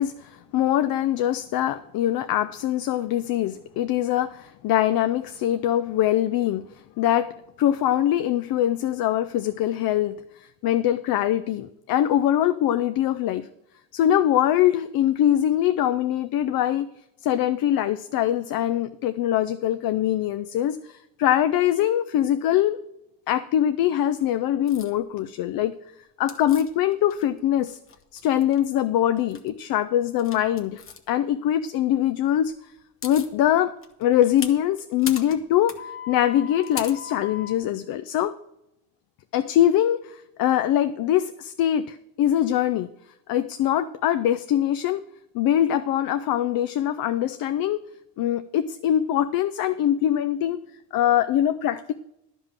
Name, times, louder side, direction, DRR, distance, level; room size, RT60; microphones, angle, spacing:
voice 1, 0.0-6.7 7.0-10.2 10.6-13.5 13.9-16.9 17.2-22.8 23.3-25.7 26.2-27.8 28.2-30.8 31.1-32.5 33.0-33.7 34.0-35.8 36.1-38.3 39.3-42.9 43.3-45.0 45.3-47.8 48.2-50.6 50.9-51.9, left 11 dB, 65° left, 12 dB, 0.5 m, -23 dB
sound 1, 24.7-24.9 26.3-27.4 27.7-28.6 29.1-29.5 30.2-31.0 32.5-32.6 32.8-33.3 33.8-37.6, left 7 dB, 35° left, 0.9 m, -38 dB
12.0 x 5.5 x 7.4 m, 0.84 s
cardioid pair, 175°, 38 cm